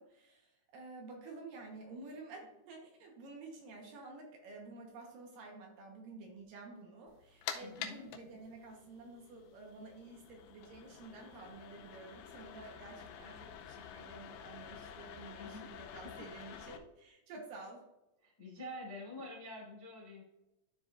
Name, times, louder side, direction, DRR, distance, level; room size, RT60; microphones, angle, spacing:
voice 1, 0.0-17.8, right 3 dB, 65° right, 1 dB, 2.5 m, -51 dB
sound 1, 7.1-16.8, left 8 dB, 85° left, 2.5 m, -49 dB
voice 2, 7.6-8.0 12.7-13.4 15.4-15.7 16.0-16.1 18.2-20.2, left 1 dB, 20° left, -4 dB, 0.7 m, -48 dB
13.0 x 4.9 x 2.5 m, 0.96 s
omnidirectional pair, 4.7 m